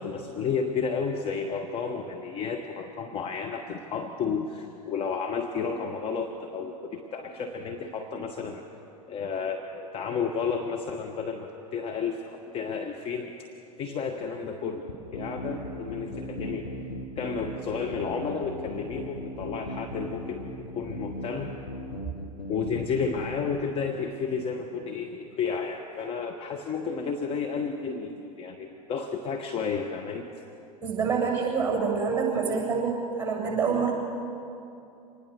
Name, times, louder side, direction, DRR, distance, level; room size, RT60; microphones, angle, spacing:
voice 1, 0.0-8.6 9.1-13.3 13.8-14.9 15.1-16.7 17.2-21.5 22.5-30.2, left 5 dB, 25° left, 3 dB, 1.4 m, -32 dB
sound 1, 14.9-23.6, left 1 dB, 75° left, 2.4 m, -37 dB
voice 2, 30.8-33.9, right 5 dB, 10° right, -1 dB, 7.6 m, -26 dB
26.0 x 20.0 x 6.7 m, 2.7 s
figure-of-eight pair, 90°, 21 cm